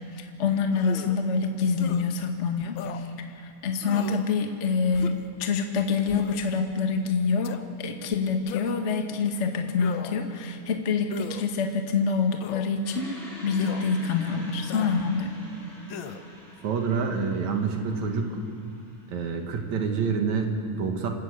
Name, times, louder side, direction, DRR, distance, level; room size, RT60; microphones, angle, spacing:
voice 1, 0.0-3.1 3.4-15.3, left 5 dB, 35° left, 4 dB, 1.1 m, -26 dB
sound 1, 0.7-1.2 1.8-2.0 2.8-3.0 3.8-4.3 4.9-5.3 6.1-6.5 7.4-7.6 8.5-8.9 9.7-10.3 11.1-11.4 12.4-12.7 13.6-13.8 14.7-15.0 15.9-16.2, left 9 dB, 90° left, 1.1 m, -37 dB
sound 2, 12.8-19.9, equal, ahead, 7.7 m, -47 dB
voice 2, 16.6-18.4 19.1-21.1, right 5 dB, 70° right, 4 dB, 3.0 m, -27 dB
27.5 x 13.5 x 8.4 m, 2.4 s
omnidirectional pair, 3.5 m